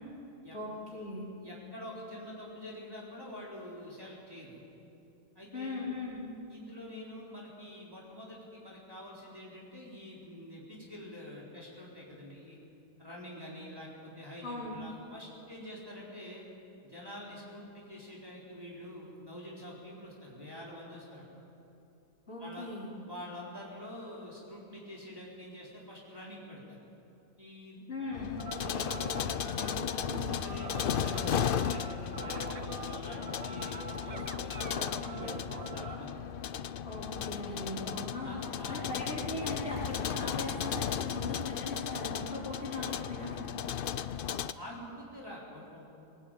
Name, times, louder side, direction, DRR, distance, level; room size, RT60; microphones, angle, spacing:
voice 1, 0.5-1.3 5.5-6.2 14.4-14.8 22.3-22.9 27.9-28.3 36.8-38.4 38.7-43.4, left 2 dB, 40° left, -5 dB, 4.6 m, -39 dB
voice 2, 1.4-4.7 5.3-5.8 6.5-12.6 13.0-16.4 16.8-21.4 22.4-22.7 23.0-26.8 27.4-27.8 28.5-36.2 38.2-38.9 44.5-45.8, left 1 dB, 15° right, -5 dB, 4.1 m, -46 dB
sound 1, 28.1-44.5, left 8 dB, 75° left, 0.4 m, -35 dB
sound 2, 28.4-36.0, right 5 dB, 65° right, 0.3 m, -44 dB
20.5 x 19.0 x 9.1 m, 2.8 s
omnidirectional pair, 1.7 m